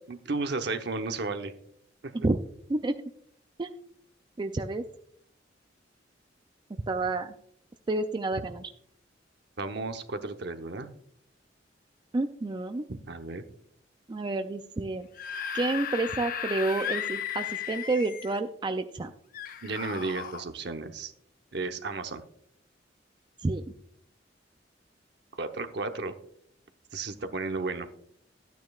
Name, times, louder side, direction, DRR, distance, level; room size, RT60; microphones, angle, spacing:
voice 1, 0.1-1.5 9.6-10.9 13.1-13.4 19.6-21.1 21.5-22.2 25.4-26.1 26.9-27.9, right 3 dB, 65° right, 7 dB, 0.9 m, -33 dB
voice 2, 4.4-4.8 6.9-7.3 7.9-8.7 12.1-12.8 14.1-15.1 15.5-19.1 23.4-23.6, right 2 dB, 25° right, 8 dB, 0.4 m, -29 dB
Screaming / Screech, 15.0-18.4 19.3-20.4, left 8 dB, 50° left, 0.6 m, -35 dB
12.5 x 9.3 x 2.4 m, 0.67 s
head